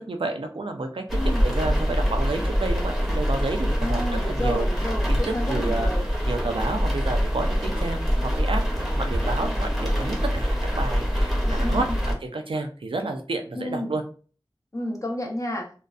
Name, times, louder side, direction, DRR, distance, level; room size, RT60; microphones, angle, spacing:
voice 1, 0.0-4.7 5.1-5.2 5.5-5.9 6.3-14.0, right 3 dB, 80° right, 5 dB, 0.4 m, -30 dB
voice 2, 1.1-1.5 3.8-6.1 11.4-12.0 13.5-14.0 14.7-15.7, left 1 dB, 35° left, 1 dB, 0.7 m, -31 dB
sound 1, 1.1-12.1, equal, ahead, 0.8 m, -24 dB
2.6 x 2.1 x 2.3 m, 0.39 s
wide cardioid pair, 55°, 9 cm